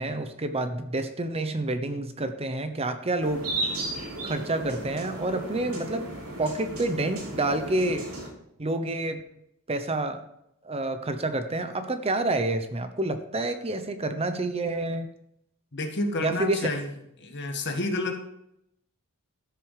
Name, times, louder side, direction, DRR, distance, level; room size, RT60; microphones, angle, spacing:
voice 1, 0.0-3.5 4.2-6.1 6.4-8.1 8.6-9.2 9.7-10.2 10.6-15.1 16.2-16.7, right 2 dB, 25° right, 9 dB, 0.9 m, -28 dB
sound 1, 3.2-8.3, right 2 dB, 75° right, 3.9 m, -35 dB
voice 2, 15.7-16.9 17.2-18.2, left 2 dB, 55° left, 4 dB, 1.8 m, -29 dB
13.5 x 6.8 x 5.0 m, 0.78 s
head